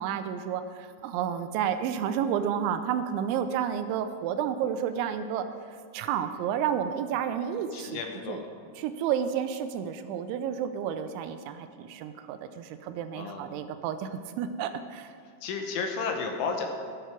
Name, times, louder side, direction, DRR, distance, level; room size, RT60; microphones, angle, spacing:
voice 1, 0.0-5.4 5.9-8.0 8.3-8.4 8.8-15.1, right 8 dB, 85° right, 9 dB, 2.8 m, -31 dB
voice 2, 7.6-8.7 13.1-13.6 15.4-16.7, left 5 dB, 80° left, 4 dB, 3.5 m, -33 dB
13.0 x 11.0 x 4.6 m, 2.3 s
omnidirectional pair, 5.5 m